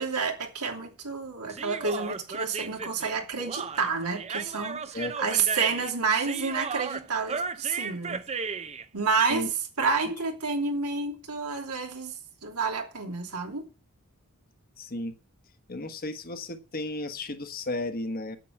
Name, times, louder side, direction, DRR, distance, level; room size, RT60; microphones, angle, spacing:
voice 1, 0.0-8.2 8.9-9.5 9.8-12.1 12.4-13.6, right 4 dB, 85° right, 2.9 m, -29 dB
Human voice, 1.5-8.9, right 5 dB, 30° right, 0.7 m, -35 dB
voice 2, 4.9-5.4 9.3-9.5 14.8-15.1 15.7-18.4, left 2 dB, 40° left, 1.3 m, -34 dB
9.3 x 7.9 x 8.1 m
head